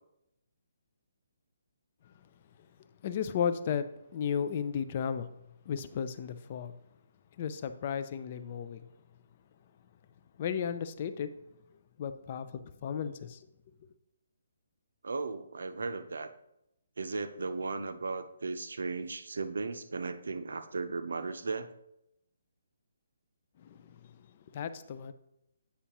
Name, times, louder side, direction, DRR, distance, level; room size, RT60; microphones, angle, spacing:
voice 1, 3.0-5.3 5.7-6.7 7.4-8.8 10.4-11.3 12.0-13.4 23.6-24.2 24.5-25.1, left 7 dB, 30° left, 0.3 m, -34 dB
voice 2, 15.0-16.3 17.0-21.7, right 4 dB, 80° right, 0.6 m, -36 dB
8.4 x 5.5 x 2.9 m
hypercardioid pair, 175°, 0 cm